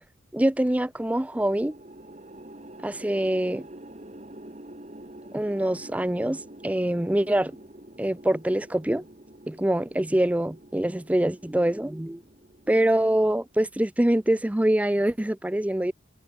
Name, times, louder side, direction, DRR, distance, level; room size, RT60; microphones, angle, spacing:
voice 1, 0.3-1.7 2.8-3.7 5.3-7.6 8.0-9.0 9.5-12.2 12.7-15.9, right 1 dB, 5° right, 0.4 m, -24 dB
sound 1, 1.3-13.6, right 1 dB, 35° right, 2.3 m, -47 dB
head